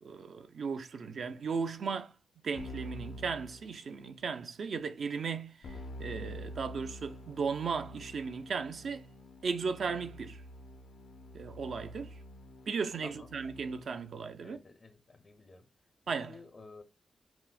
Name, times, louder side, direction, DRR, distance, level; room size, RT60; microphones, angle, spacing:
voice 1, 0.0-2.1 2.4-9.1 9.4-10.4 11.3-12.1 12.7-14.6 16.1-16.4, right 5 dB, 65° right, 0.4 m, -36 dB
Keyboard (musical), 2.6-4.2 5.6-14.0, left 1 dB, 85° left, 0.6 m, -47 dB
voice 2, 13.0-13.4 14.4-15.7 16.3-16.8, left 3 dB, 40° left, 0.5 m, -52 dB
5.8 x 2.1 x 2.3 m
wide cardioid pair, 115°, 0 cm